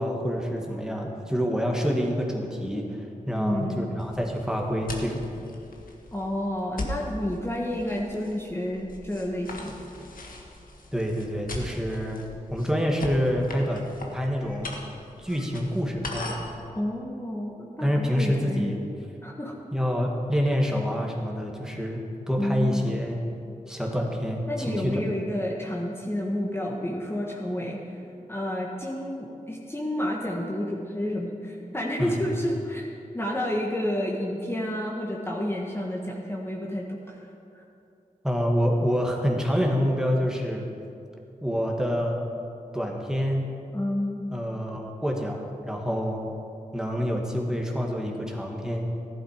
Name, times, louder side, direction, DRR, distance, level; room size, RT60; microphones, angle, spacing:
voice 1, 0.0-5.2 10.9-12.3 12.5-14.8 15.2-16.4 17.8-18.8 19.7-23.2 23.7-25.0 32.0-32.2 38.2-40.7 41.4-42.2 42.7-43.5 44.3-46.2 46.7-48.9, equal, 5° right, 0 dB, 2.0 m, -27 dB
voice 2, 3.3-3.9 6.1-9.7 16.7-18.9 19.2-19.6 22.4-23.0 24.5-28.0 28.3-32.9 33.1-37.2 43.7-44.3, left 1 dB, 15° left, -2 dB, 1.6 m, -30 dB
sound 1, 4.0-16.6, left 2 dB, 80° left, 1.6 m, -40 dB
14.0 x 11.5 x 5.1 m, 2.6 s
cardioid pair, 65°, 14 cm